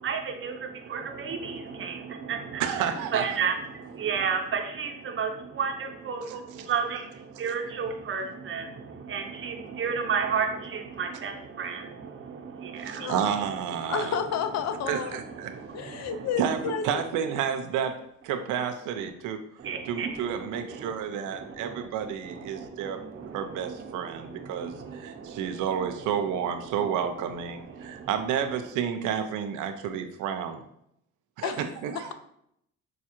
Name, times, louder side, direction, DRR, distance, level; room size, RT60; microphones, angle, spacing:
voice 1, 0.0-2.6 3.1-13.1 13.8-13.9 15.4-16.3 19.6-20.9 21.3-21.9 22.2-25.6 27.8-28.1, right 6 dB, 45° right, 3 dB, 0.7 m, -33 dB
voice 2, 2.6-3.4 6.2-7.0 12.8-14.2 14.9-15.5 16.0-18.0 18.2-19.4 19.9-23.1 23.3-30.6 31.4-32.1, right 8 dB, 90° right, 7 dB, 0.5 m, -31 dB
voice 3, 13.0-13.4 13.9-15.2 15.7-16.9 31.4-31.6, left 7 dB, 60° left, 9 dB, 0.5 m, -30 dB
4.8 x 2.3 x 2.9 m, 0.75 s
cardioid pair, 90°, 30 cm